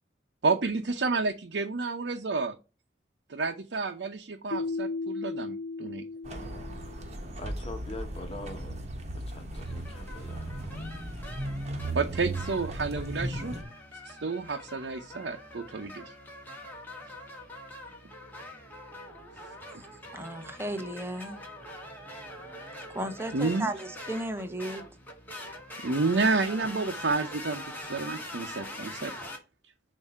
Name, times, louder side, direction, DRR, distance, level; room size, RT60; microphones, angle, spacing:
voice 1, 0.4-2.6 3.3-6.0 11.9-13.5 14.0-16.1 19.7-19.8 23.3-23.7 25.8-29.1, right 3 dB, 85° right, 0.7 m, -30 dB
Keyboard (musical), 4.5-7.3, left 3 dB, 80° left, 0.5 m, -36 dB
sound 1, 6.2-13.6, right 1 dB, 40° right, 1.1 m, -36 dB
voice 2, 7.4-8.9 9.1-10.5, left 1 dB, 35° left, 1.3 m, -43 dB
sound 2, 9.5-29.4, left 1 dB, 10° left, 1.6 m, -44 dB
voice 3, 20.1-21.4 22.9-24.9, right 1 dB, 15° right, 0.8 m, -35 dB
7.2 x 2.7 x 5.4 m
head